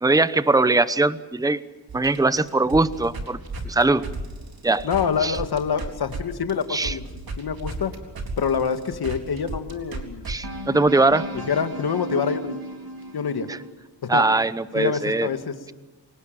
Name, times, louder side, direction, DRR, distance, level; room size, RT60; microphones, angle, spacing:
voice 1, 0.0-1.6 1.9-3.4 3.6-4.1 4.6-4.9 5.2-5.4 6.7-6.9 10.3-11.3 13.5-13.6 14.1-15.3, right 2 dB, 10° right, 14 dB, 0.9 m, -21 dB
sound 1, 1.9-6.2 6.5-13.7, right 2 dB, 60° right, 4.0 m, -34 dB
voice 2, 4.8-7.1 7.4-7.9 8.4-10.3 11.3-12.6 13.1-13.5 14.0-14.2 14.7-15.5, left 6 dB, 65° left, 8 dB, 2.1 m, -26 dB
27.5 x 18.5 x 7.5 m, 1.1 s
cardioid pair, 75°, 41 cm